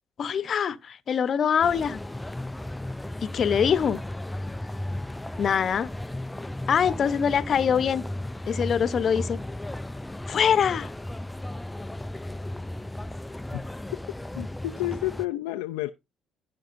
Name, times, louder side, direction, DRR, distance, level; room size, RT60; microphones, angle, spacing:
voice 1, 0.2-2.0 3.2-4.0 5.4-5.9 6.7-8.0 8.5-9.4 10.3-10.9, left 7 dB, 55° left, 0.8 m, -24 dB
sound 1, 1.6-15.3, left 1 dB, 10° left, 0.4 m, -35 dB
voice 2, 14.4-15.9, left 15 dB, 90° left, 0.4 m, -30 dB
15.0 x 5.9 x 2.6 m
supercardioid pair, 65°, 0 cm